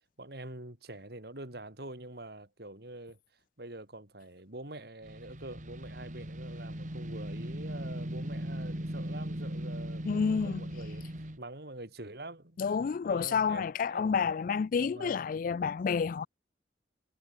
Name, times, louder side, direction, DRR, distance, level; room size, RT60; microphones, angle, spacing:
voice 1, 0.2-3.2 3.6-11.1 11.4-12.6 13.0-14.2 14.8-15.2, right 1 dB, 65° right, 4.3 m, -45 dB
sound 1, 5.0-11.4, equal, 45° right, 3.2 m, -38 dB
voice 2, 10.1-10.7 12.6-16.3, left 6 dB, 50° left, 0.3 m, -29 dB
head